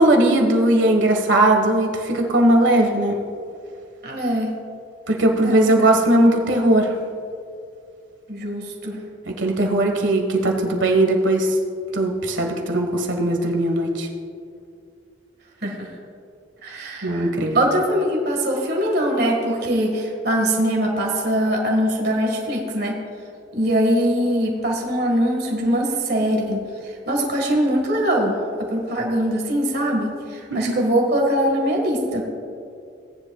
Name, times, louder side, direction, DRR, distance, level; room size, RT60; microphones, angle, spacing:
voice 1, 0.0-3.2 5.1-6.9 9.4-11.5 11.9-14.1 17.0-17.6 30.5-30.7, right 1 dB, 85° right, 2 dB, 1.5 m, -18 dB
voice 2, 4.0-4.5 5.4-5.9 8.3-9.0 15.6-15.9 16.6-17.3 17.6-22.9 23.5-26.6 27.1-32.2, equal, 60° right, 0 dB, 1.7 m, -22 dB
17.5 x 10.0 x 2.3 m, 2.4 s
head